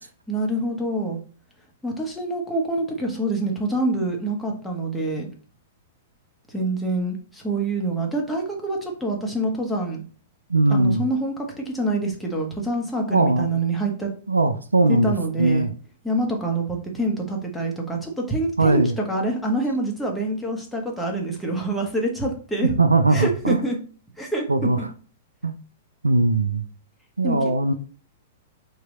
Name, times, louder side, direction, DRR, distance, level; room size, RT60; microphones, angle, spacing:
voice 1, 0.3-1.2 1.8-5.3 6.5-10.0 10.7-14.1 14.9-15.7 16.0-22.7 23.1-23.8 24.2-24.9 27.2-27.7, right 2 dB, ahead, 1.3 m, -26 dB
voice 2, 10.5-11.1 13.1-13.5 14.3-15.7 18.6-19.0 22.8-23.6 24.5-24.8 25.4-25.5 26.0-26.6 27.2-27.7, right 2 dB, 80° right, 0.4 m, -20 dB
4.6 x 2.8 x 4.1 m
figure-of-eight pair, 105°, 0 cm